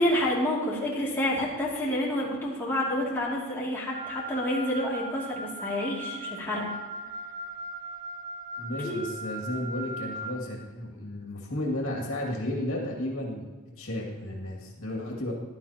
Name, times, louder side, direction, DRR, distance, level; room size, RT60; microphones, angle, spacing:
voice 1, 0.0-6.6 8.8-9.0, left 1 dB, 10° left, -7 dB, 2.6 m, -28 dB
Wind instrument woodwind instrument, 3.9-10.4, right 1 dB, 40° right, 1.8 m, -38 dB
voice 2, 8.6-13.5 13.8-15.3, left 1 dB, 70° left, -2 dB, 2.4 m, -33 dB
15.5 x 11.5 x 2.9 m, 1.3 s
head